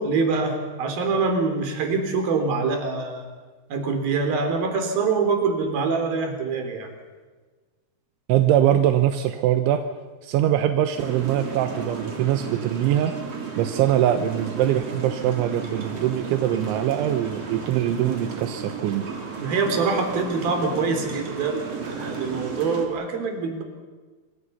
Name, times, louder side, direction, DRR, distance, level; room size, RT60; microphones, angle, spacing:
voice 1, 0.0-3.3 3.7-6.9 19.4-23.6, right 4 dB, 55° right, 5 dB, 5.1 m, -25 dB
voice 2, 8.3-9.8 10.2-13.1 13.6-19.1, right 11 dB, 85° right, 8 dB, 3.3 m, -22 dB
sound 1, 11.0-22.9, right 5 dB, 35° right, 3.9 m, -33 dB
27.0 x 24.0 x 5.7 m, 1.4 s
omnidirectional pair, 5.4 m